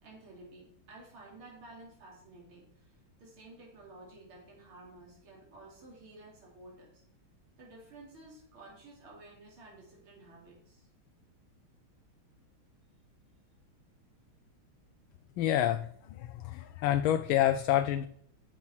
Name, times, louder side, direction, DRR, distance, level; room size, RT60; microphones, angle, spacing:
voice 1, 0.0-7.0 7.6-10.9, right 2 dB, 80° right, -3 dB, 3.7 m, -53 dB
voice 2, 15.4-15.9 16.2-18.1, left 12 dB, 75° left, 10 dB, 1.4 m, -28 dB
13.0 x 5.7 x 4.4 m, 0.68 s
omnidirectional pair, 2.3 m